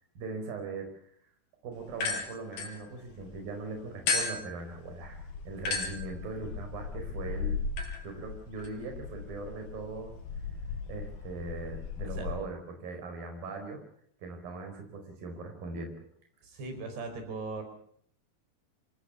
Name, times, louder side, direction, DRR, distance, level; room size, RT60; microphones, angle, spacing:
voice 1, 0.2-0.9 1.6-7.6 8.0-10.2 10.9-13.8 14.2-16.1, right 3 dB, 60° right, 4 dB, 6.4 m, -40 dB
sound 1, 1.9-3.4 4.1-12.4, left 4 dB, 70° left, 5.6 m, -36 dB
voice 2, 16.4-17.6, right 3 dB, 90° right, 6 dB, 7.3 m, -39 dB
27.0 x 18.5 x 7.2 m, 0.64 s
omnidirectional pair, 4.6 m